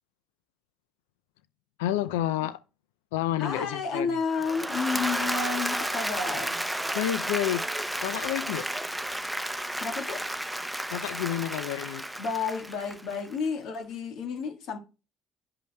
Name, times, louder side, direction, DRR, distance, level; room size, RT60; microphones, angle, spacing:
voice 1, 1.8-2.6 3.1-4.2 6.9-7.7 8.0-8.7 10.9-12.0, left 12 dB, 90° left, 0.3 m, -29 dB
voice 2, 3.4-6.6 9.8-10.3 12.2-14.8, left 5 dB, 65° left, 1.5 m, -31 dB
Applause / Crowd, 4.2-13.4, right 1 dB, 5° right, 0.6 m, -32 dB
12.0 x 5.3 x 2.2 m
supercardioid pair, 75°, 0 cm